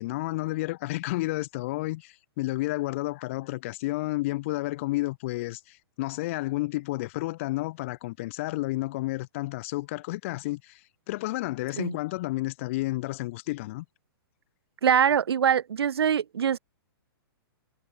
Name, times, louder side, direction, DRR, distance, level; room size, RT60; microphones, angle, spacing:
voice 1, 0.0-10.8 11.1-13.8, left 19 dB, 30° left, 1.7 m, -31 dB
voice 2, 14.8-16.6, right 8 dB, 80° right, 3.0 m, -23 dB
hypercardioid pair, 170°, 13 cm